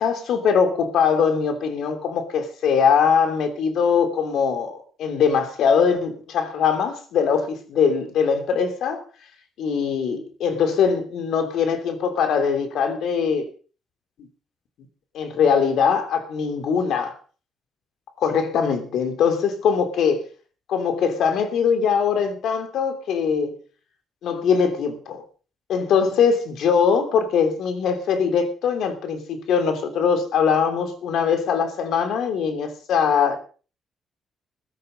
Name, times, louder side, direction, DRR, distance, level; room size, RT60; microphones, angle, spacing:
voice 1, 0.0-9.0 9.6-13.5 15.1-17.2 18.2-20.2 20.7-23.6 24.2-25.2 25.7-33.4, left 6 dB, 75° left, 3.0 m, -21 dB
16.0 x 12.5 x 5.2 m
cardioid pair, 90°, 0 cm